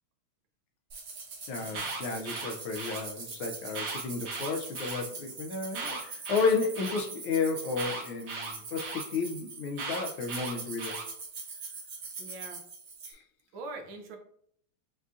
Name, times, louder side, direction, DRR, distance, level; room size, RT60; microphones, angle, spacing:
sound 1, 0.9-13.1, right 4 dB, 55° right, 1.1 m, -43 dB
voice 1, 1.5-11.0 13.0-13.2, left 4 dB, 75° left, 3 dB, 1.4 m, -32 dB
Alarm, 1.6-3.0 3.7-5.0 5.7-7.0 7.8-9.0 9.8-11.0, right 4 dB, 90° right, 1.9 m, -37 dB
voice 2, 12.2-12.6 13.5-14.2, right 3 dB, 75° right, 3 dB, 1.3 m, -42 dB
6.1 x 2.6 x 2.4 m, 0.64 s
omnidirectional pair, 2.4 m